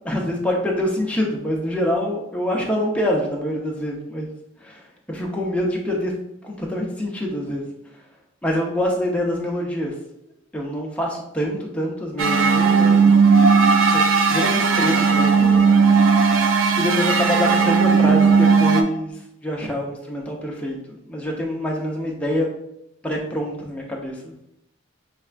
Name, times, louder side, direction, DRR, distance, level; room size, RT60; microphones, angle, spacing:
voice 1, 0.0-4.3 4.6-6.1 6.4-7.6 8.4-9.9 10.5-13.1 13.9-15.5 16.8-22.5 23.0-24.3, left 1 dB, 5° left, -2 dB, 0.8 m, -25 dB
sound 1, 12.2-18.8, right 5 dB, 90° right, 0.5 m, -16 dB
5.7 x 3.3 x 2.4 m, 0.79 s
head